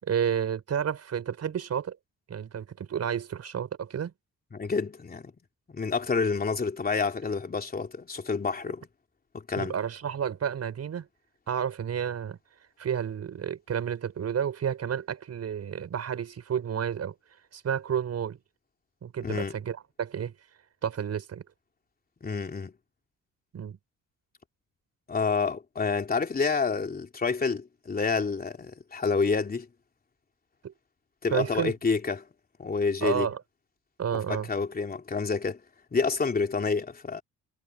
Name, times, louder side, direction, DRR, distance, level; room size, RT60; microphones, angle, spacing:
voice 1, 0.0-2.0 2.3-4.1 9.6-11.1 11.5-12.4 12.8-17.1 17.5-18.4 19.0-20.3 20.8-21.4 23.5-23.8 30.6-30.7 31.3-31.7 33.0-33.4 34.0-34.5, right 8 dB, 55° right, 6.7 m, -31 dB
voice 2, 4.5-5.3 5.7-8.9 9.3-9.7 19.2-19.6 22.2-22.7 25.1-29.7 31.2-32.3 32.6-33.3 34.1-35.6 35.9-37.2, left 4 dB, 30° left, 3.1 m, -28 dB
cardioid pair, 90°, 30 cm